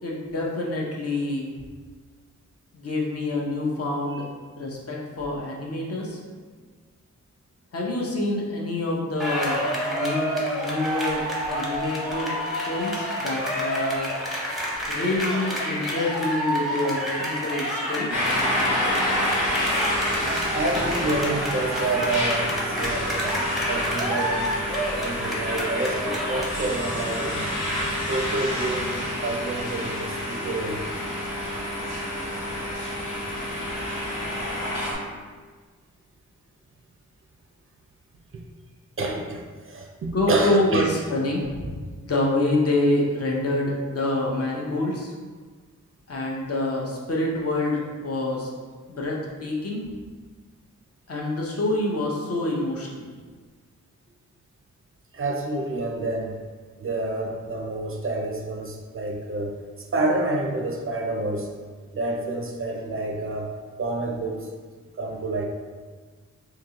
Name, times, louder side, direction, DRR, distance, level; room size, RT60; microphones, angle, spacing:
voice 1, 0.0-1.5 2.7-4.3 4.6-6.2 7.7-12.4 12.7-14.1 14.9-18.1 40.1-41.7 42.0-45.1 46.1-48.5 48.9-49.8 51.1-53.1, left 2 dB, 50° left, -2 dB, 0.7 m, -27 dB
sound 1, 9.2-26.5, equal, ahead, 0.6 m, -29 dB
sound 2, 18.1-34.9, left 1 dB, 85° left, 1.0 m, -28 dB
voice 2, 20.5-23.4 23.7-24.6 25.0-27.5 28.1-30.8 39.0-40.9 55.1-56.4 56.8-61.5 61.9-63.5 63.8-64.5 65.0-65.5, right 2 dB, 45° right, 1 dB, 0.4 m, -28 dB
3.7 x 2.8 x 2.8 m, 1.5 s
wide cardioid pair, 155°, 30 cm